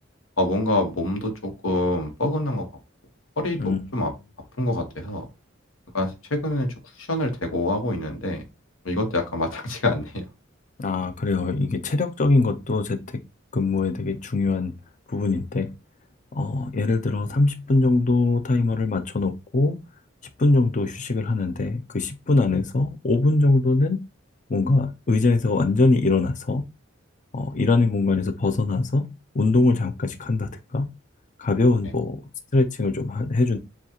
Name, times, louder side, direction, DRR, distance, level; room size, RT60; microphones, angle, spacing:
voice 1, 0.4-2.7 3.4-4.1 4.6-5.3 5.9-8.4 8.8-10.2, left 1 dB, 85° left, 1.2 m, -26 dB
voice 2, 10.8-13.2 13.5-14.7 15.1-15.7 16.3-19.8 20.4-24.0 24.5-26.6 27.3-29.1 29.3-30.9 31.4-32.2 32.5-33.6, left 3 dB, 40° left, 0.6 m, -22 dB
7.2 x 2.4 x 2.8 m
head